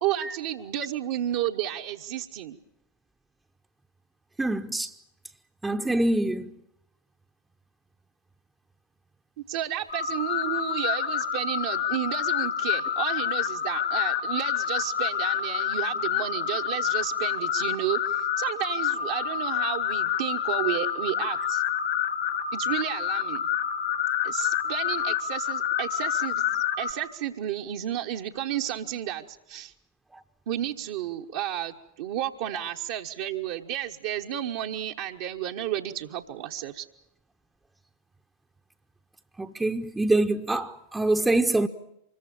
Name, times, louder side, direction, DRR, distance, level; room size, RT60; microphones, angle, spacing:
voice 1, 0.0-2.6 9.4-21.6 22.5-23.4 24.2-29.7 30.5-36.9, right 12 dB, 50° right, 1.1 m, -32 dB
voice 2, 4.4-4.9 5.6-6.5 39.4-41.7, right 2 dB, 10° right, 0.9 m, -25 dB
sound 1, 9.9-26.9, left 9 dB, 50° left, 1.7 m, -28 dB
25.5 x 22.0 x 7.4 m
figure-of-eight pair, 90°, 0 cm